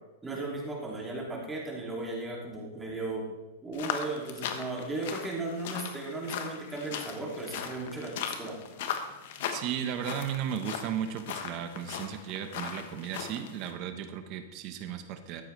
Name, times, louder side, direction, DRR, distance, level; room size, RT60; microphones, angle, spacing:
voice 1, 0.2-3.3 3.6-8.6, right 2 dB, 10° right, -2 dB, 2.9 m, -36 dB
sound 1, 3.7-13.7, left 8 dB, 65° left, 1.3 m, -38 dB
voice 2, 9.5-15.4, right 9 dB, 45° right, 8 dB, 1.3 m, -35 dB
13.5 x 9.4 x 3.4 m, 1.1 s
hypercardioid pair, 135°, 0 cm